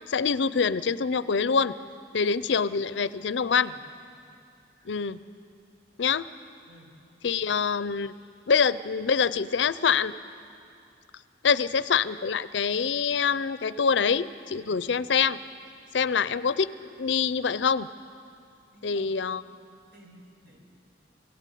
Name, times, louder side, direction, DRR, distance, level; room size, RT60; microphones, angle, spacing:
voice 1, 0.0-1.7 2.1-3.7 4.9-5.2 6.0-6.3 7.2-8.1 8.5-10.1 11.4-15.4 15.9-17.9 18.8-19.4, left 6 dB, 75° left, 16 dB, 0.5 m, -25 dB
voice 2, 2.9-3.8 4.8-5.1 6.7-7.0 7.4-7.5 14.6-14.9 16.0-16.2 18.7-19.1 19.7-20.6, right 1 dB, 65° right, -1 dB, 4.8 m, -54 dB
21.5 x 16.5 x 8.4 m, 2.5 s
head